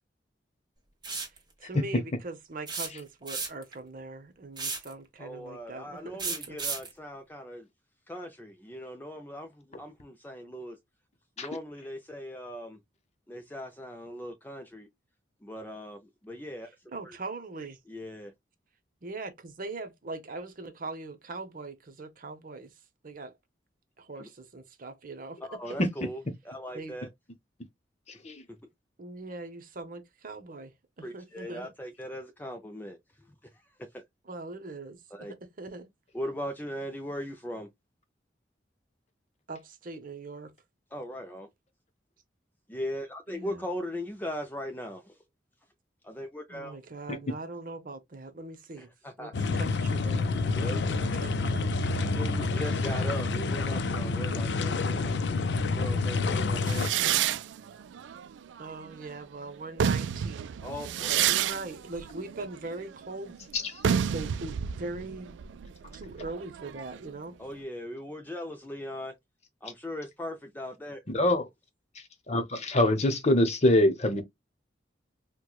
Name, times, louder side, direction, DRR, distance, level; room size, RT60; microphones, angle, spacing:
sound 1, 1.0-1.4 2.7-3.7 4.6-4.9 6.2-6.9, right 4 dB, 25° right, 1.0 m, -33 dB
voice 1, 1.2-6.6 16.9-17.8 19.0-23.3 24.0-25.6 26.7-26.9 29.0-31.7 34.2-35.9 39.5-40.5 43.3-43.7 46.5-48.9 49.2-50.6 50.9-51.7 58.6-60.6 61.1-63.4 64.0-65.3 65.9-67.4, right 3 dB, 50° right, 0.8 m, -41 dB
voice 2, 5.2-7.7 8.1-10.8 11.4-12.8 13.3-14.9 15.4-16.7 17.0-17.2 17.9-18.3 24.2-24.3 25.5-26.2 26.4-27.1 31.0-33.6 33.9-34.0 35.1-35.3 36.1-37.7 40.9-41.5 42.7-45.2 46.0-46.8 48.8-49.3 50.5-50.9 52.0-55.2 55.7-56.9 60.6-61.3 67.4-69.1 69.6-71.0, equal, 10° left, 0.4 m, -39 dB
voice 3, 28.1-28.4 63.5-63.7 71.1-71.5 71.9-74.2, left 1 dB, 35° left, 0.8 m, -25 dB
sound 2, 49.3-56.9, left 3 dB, 65° left, 0.5 m, -28 dB
sound 3, 56.7-59.1 59.6-67.1, right 9 dB, 80° right, 0.3 m, -30 dB
4.6 x 2.2 x 2.3 m
head